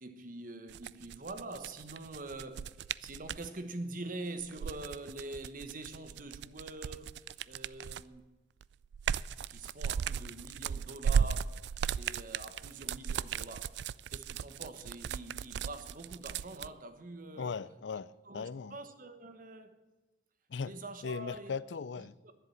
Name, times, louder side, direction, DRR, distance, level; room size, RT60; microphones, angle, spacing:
voice 1, 0.0-7.1 7.5-8.2 9.4-13.8 14.1-17.6 18.2-19.8 20.6-21.6 22.2-22.3, right 2 dB, 50° right, 1.1 m, -45 dB
sound 1, 0.7-3.5 4.4-8.2 8.6-16.7, right 7 dB, 65° right, 0.3 m, -36 dB
voice 2, 17.4-18.8 20.5-20.7 21.0-22.2, left 5 dB, 75° left, 0.4 m, -38 dB
11.0 x 7.7 x 9.6 m
head